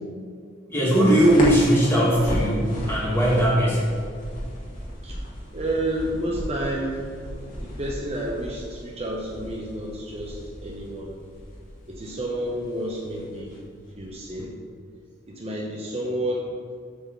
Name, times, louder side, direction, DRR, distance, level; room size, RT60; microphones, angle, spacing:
voice 1, 0.7-3.9, equal, 10° left, -7 dB, 2.2 m, -19 dB
sound 1, 0.9-14.4, equal, 40° left, 1.8 m, -35 dB
voice 2, 5.5-7.1 7.6-11.2 11.9-13.5 14.0-14.5 15.3-16.5, right 1 dB, 30° right, -3 dB, 0.9 m, -30 dB
7.8 x 4.1 x 6.8 m, 2.2 s
head